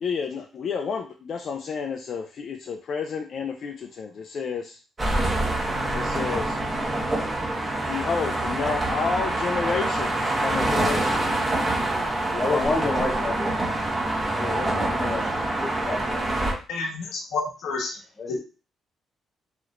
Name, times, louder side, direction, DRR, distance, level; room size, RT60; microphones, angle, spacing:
voice 1, 0.0-4.8 5.9-6.6 7.9-11.2 12.3-13.0 14.4-15.5, left 5 dB, 55° left, 3 dB, 0.4 m, -31 dB
sound 1, 5.0-16.5, right 1 dB, 25° right, 1.0 m, -26 dB
voice 2, 12.4-13.8 14.6-16.3 18.2-18.4, left 3 dB, 35° left, 1 dB, 0.9 m, -30 dB
voice 3, 16.7-18.0 18.3-18.4, left 3 dB, 85° left, 1 dB, 1.0 m, -29 dB
3.1 x 2.8 x 2.5 m, 0.34 s
cardioid pair, 90°, 0 cm